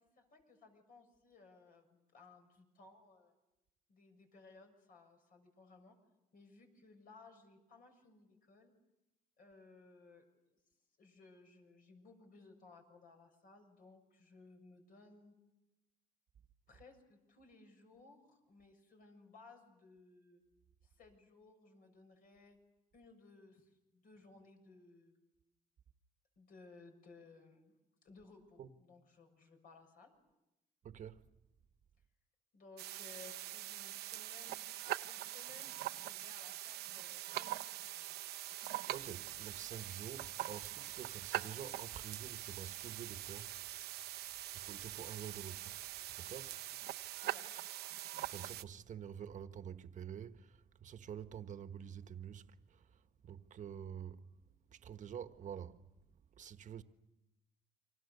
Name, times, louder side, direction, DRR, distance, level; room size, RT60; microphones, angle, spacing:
voice 1, 0.2-3.3 3.9-6.0 6.3-8.7 9.4-10.2 11.0-15.3 16.7-20.4 20.8-22.6 22.9-25.1 26.4-27.7 28.0-30.1 32.5-34.7 35.1-38.2 47.2-47.5, left 3 dB, 55° left, 6.8 m, -60 dB
voice 2, 30.8-31.3 38.9-43.6 44.5-45.8 46.1-46.5 48.3-54.3 54.7-55.8 56.3-56.8, right 8 dB, 45° right, 1.4 m, -48 dB
sound 1, 32.8-48.6, right 14 dB, 75° right, 0.9 m, -43 dB
29.5 x 25.0 x 6.8 m
cardioid pair, 110°, 17 cm